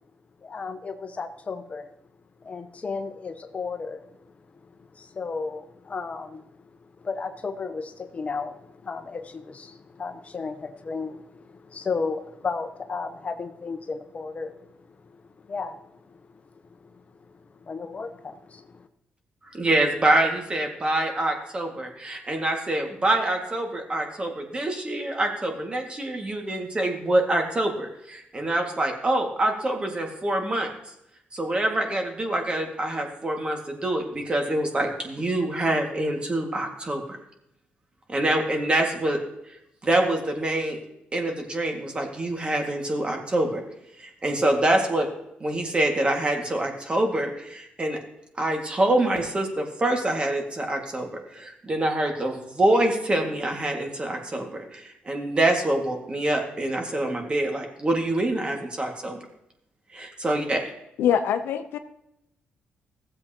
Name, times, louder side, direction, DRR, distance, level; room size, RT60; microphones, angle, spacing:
voice 1, 0.4-1.9 2.4-4.0 4.9-6.5 7.0-14.7 15.1-15.8 16.8-17.0 17.3-18.9, left 4 dB, 40° left, 8 dB, 0.8 m, -34 dB
voice 2, 19.5-30.7 31.3-37.0 38.1-39.2 39.8-40.8 41.1-43.6 44.0-45.1 45.4-48.0 48.4-59.2 59.9-60.6, right 1 dB, 30° right, 2 dB, 2.0 m, -25 dB
voice 3, 61.0-61.8, left 9 dB, 85° left, 8 dB, 0.7 m, -23 dB
15.5 x 7.8 x 3.0 m, 0.81 s
cardioid pair, 80°, 4 cm